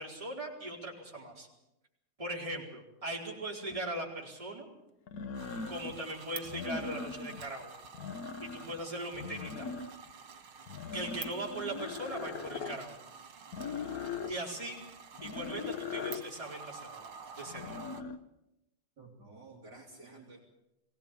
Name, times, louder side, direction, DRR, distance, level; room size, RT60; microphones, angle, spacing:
voice 1, 0.0-1.5 2.2-4.7 5.7-7.7 8.4-9.7 10.9-13.0 14.3-14.8 15.2-17.0 17.4-17.8, right 1 dB, 15° right, -2 dB, 4.3 m, -39 dB
sound 1, 3.7-3.8 5.1-6.0 6.4-7.5 7.8-8.8 9.1-10.1 10.7-12.8 13.5-14.4 15.2-16.3 17.5-18.2, left 5 dB, 55° left, 1.3 m, -40 dB
sound 2, 5.3-18.0, right 5 dB, 90° right, 2.5 m, -49 dB
voice 2, 19.0-20.4, right 3 dB, 50° right, -1 dB, 3.5 m, -52 dB
21.5 x 17.5 x 8.3 m, 0.89 s
omnidirectional pair, 2.3 m